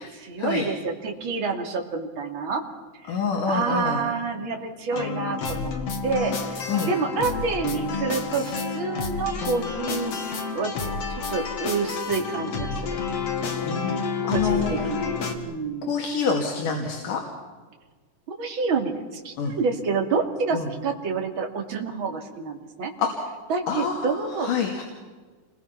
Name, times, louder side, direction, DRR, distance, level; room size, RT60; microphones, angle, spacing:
voice 1, 0.0-2.6 3.0-3.2 3.5-5.7 6.0-10.7 11.3-12.8 14.3-15.9 18.3-22.9 23.5-24.5, right 4 dB, 40° right, 2 dB, 3.2 m, -28 dB
voice 2, 3.1-4.0 6.7-6.9 13.6-15.0 15.9-17.2 19.4-19.5 20.5-20.7 23.0-23.1 23.7-24.1 24.4-24.8, left 5 dB, 75° left, 1 dB, 3.9 m, -27 dB
sound 1, 4.9-15.4, left 4 dB, 50° left, 2.9 m, -30 dB
28.5 x 22.0 x 5.9 m, 1.4 s
omnidirectional pair, 3.7 m